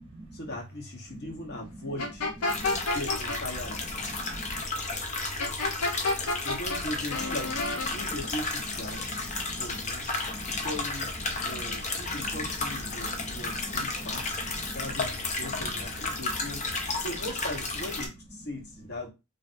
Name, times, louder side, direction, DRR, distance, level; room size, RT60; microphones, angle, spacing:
voice 1, 0.3-2.3 2.9-3.8 6.4-7.6 7.9-9.1 9.6-10.1 10.4-11.1 11.4-14.4 14.7-16.6 17.0-19.1, left 1 dB, 50° left, 1.0 m, -39 dB
sound 1, 2.0-3.4 5.4-6.8 7.1-7.9, left 2 dB, 85° left, 0.6 m, -29 dB
sound 2, 2.5-18.1, left 3 dB, 35° left, 0.6 m, -33 dB
voice 2, 2.5-2.8 4.1-4.6 8.0-8.1 8.9-9.6 10.2-10.7 11.3-11.7 12.9-14.2 14.5-14.8 15.6-15.7, right 1 dB, 25° right, 0.9 m, -44 dB
3.2 x 2.5 x 2.5 m
head